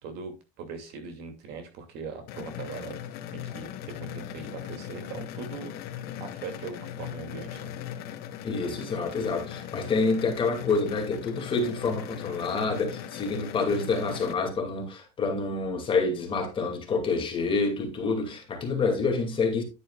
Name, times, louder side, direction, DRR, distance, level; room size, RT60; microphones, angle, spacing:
voice 1, 0.0-3.0 3.3-5.7 6.2-7.7, right 5 dB, 60° right, 2.6 m, -40 dB
sound 1, 2.3-14.3, left 10 dB, 60° left, 1.1 m, -39 dB
voice 2, 8.4-19.6, left 4 dB, 30° left, 2.5 m, -27 dB
10.0 x 9.2 x 2.4 m
cardioid pair, 140°, 19 cm